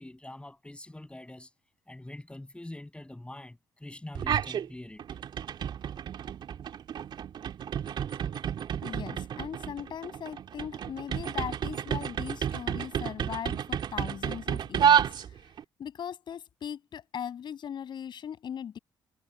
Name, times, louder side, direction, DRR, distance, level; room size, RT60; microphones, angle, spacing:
voice 1, 0.0-1.5 1.9-5.0, left 1 dB, 10° left, 7.6 m, -44 dB
sound 1, 4.1-4.7 5.0-15.6, right 8 dB, 60° right, 2.5 m, -30 dB
voice 2, 8.8-15.4 15.8-18.8, left 8 dB, 60° left, 7.7 m, -39 dB
hypercardioid pair, 50°, 9 cm